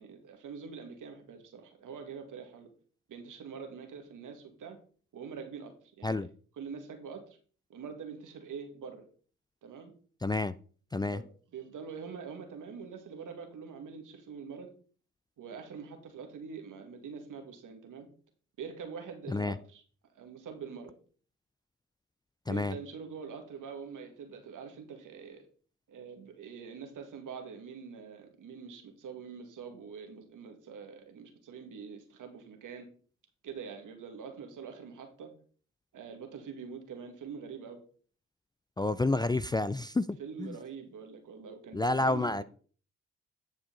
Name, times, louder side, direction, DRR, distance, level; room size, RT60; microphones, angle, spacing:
voice 1, 0.0-2.7 3.1-4.8 5.1-6.3 6.5-7.4 7.7-9.1 9.6-9.9 11.1-14.7 15.4-18.1 18.6-19.8 20.2-20.9 22.5-25.5 25.9-32.9 33.4-35.3 35.9-37.8 40.2-42.4, right 6 dB, 70° right, 2.0 m, -44 dB
voice 2, 10.2-10.5 10.9-11.2 19.3-19.5 22.5-22.7 38.8-40.5 41.7-42.4, left 2 dB, 15° left, 0.4 m, -29 dB
10.5 x 5.0 x 3.9 m
supercardioid pair, 50°, 32 cm